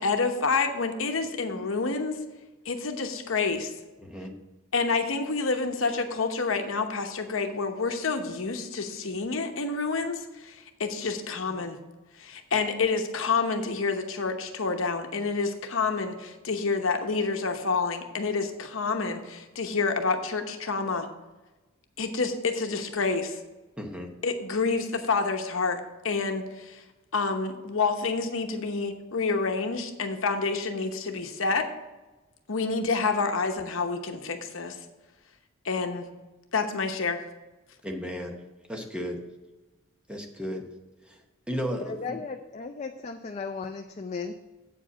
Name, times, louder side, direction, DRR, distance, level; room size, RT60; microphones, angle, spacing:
voice 1, 0.0-2.2 2.6-3.7 4.7-11.8 12.2-21.1 22.0-23.4 24.2-26.8 27.1-31.7 32.5-34.8 35.6-36.1 36.5-37.2, left 4 dB, 65° left, 6 dB, 0.9 m, -28 dB
voice 2, 4.0-4.3 11.5-11.6 23.8-24.1 37.8-38.4 38.7-39.2 40.1-40.7 41.1-41.2 41.5-42.2, equal, 5° right, 3 dB, 0.8 m, -34 dB
voice 3, 41.8-44.3, left 4 dB, 30° left, 5 dB, 0.4 m, -36 dB
8.1 x 5.0 x 7.0 m, 1.1 s
head